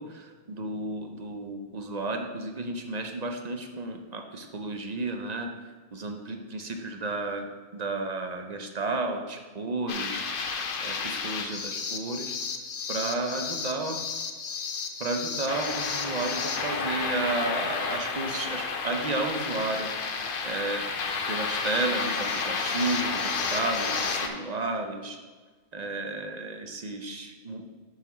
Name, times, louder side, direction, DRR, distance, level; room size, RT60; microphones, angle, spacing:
voice 1, 0.0-12.4 12.9-14.0 15.0-20.9 21.3-25.2 25.7-27.8, right 2 dB, 45° right, 4 dB, 0.7 m, -33 dB
sound 1, 9.9-24.3, left 5 dB, 55° left, 0.8 m, -31 dB
7.1 x 4.0 x 6.0 m, 1.4 s
omnidirectional pair, 1.2 m